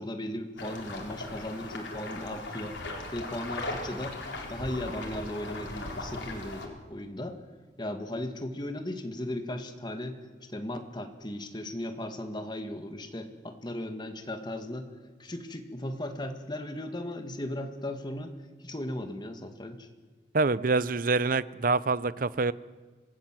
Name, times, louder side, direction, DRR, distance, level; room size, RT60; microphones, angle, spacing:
voice 1, 0.0-2.8 3.1-4.2 4.5-7.4 7.8-10.2 10.5-14.9 15.2-19.9, left 1 dB, 25° left, 6 dB, 1.9 m, -37 dB
sound 1, 0.6-6.7, left 2 dB, 85° left, 4.1 m, -38 dB
voice 2, 20.3-22.5, right 3 dB, 50° right, 18 dB, 0.6 m, -26 dB
26.5 x 19.0 x 7.6 m, 1.4 s
head